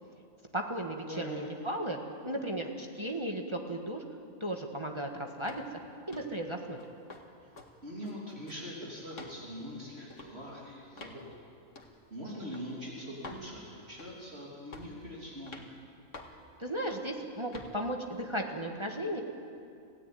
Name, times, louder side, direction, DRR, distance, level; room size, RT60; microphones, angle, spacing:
voice 1, 0.5-2.0 2.2-4.0 4.4-5.6 6.1-6.8 16.6-19.2, right 1 dB, 20° right, 1 dB, 1.7 m, -35 dB
voice 2, 1.1-1.4 7.8-11.2 12.1-15.6, equal, 45° right, -4 dB, 3.5 m, -42 dB
sound 1, 5.4-5.7 6.1-6.4 6.8-7.2 7.6-7.7 8.0-8.7 9.1-9.4 10.1-10.3 11.0-11.2 11.8-11.9 12.5-12.7 13.2-13.5 14.0-14.3 14.7-15.0 15.5-15.7 16.1-16.4 16.9-17.1 17.5-17.7, left 3 dB, 60° left, 2.3 m, -48 dB
27.5 x 16.5 x 9.3 m, 2.5 s
omnidirectional pair, 1.5 m